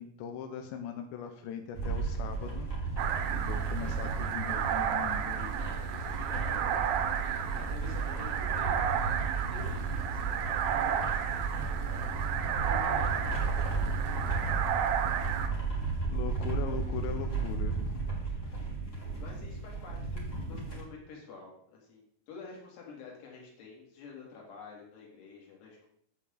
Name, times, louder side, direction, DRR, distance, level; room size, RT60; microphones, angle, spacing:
voice 1, 0.0-2.7 3.3-5.6 12.4-12.5 16.1-18.1 18.4-18.6, left 8 dB, 85° left, 5 dB, 2.6 m, -40 dB
Fahrradfahrgeräusche mit Wind, 1.7-20.8, right 4 dB, 35° left, 1.2 m, -34 dB
sound 1, 3.0-15.5, right 9 dB, 80° right, 3.2 m, -33 dB
voice 2, 5.9-6.8 7.6-13.3 19.2-20.2 20.5-25.9, left 4 dB, 60° left, -2 dB, 4.1 m, -49 dB
8.4 x 8.3 x 3.8 m, 0.66 s
omnidirectional pair, 5.9 m